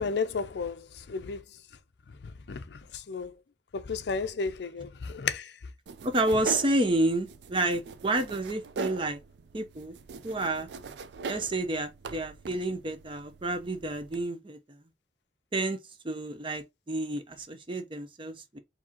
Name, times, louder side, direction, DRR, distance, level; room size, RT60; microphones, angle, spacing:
voice 1, 0.0-1.4 2.5-3.3 3.7-5.5, left 5 dB, 65° left, 0.5 m, -33 dB
sound 1, 5.9-14.2, right 4 dB, 65° right, 0.4 m, -41 dB
voice 2, 6.0-9.2 9.5-9.9 10.2-10.7 11.2-14.8 15.5-15.8 16.0-18.6, right 2 dB, 30° right, 0.7 m, -30 dB
4.7 x 2.8 x 2.8 m
head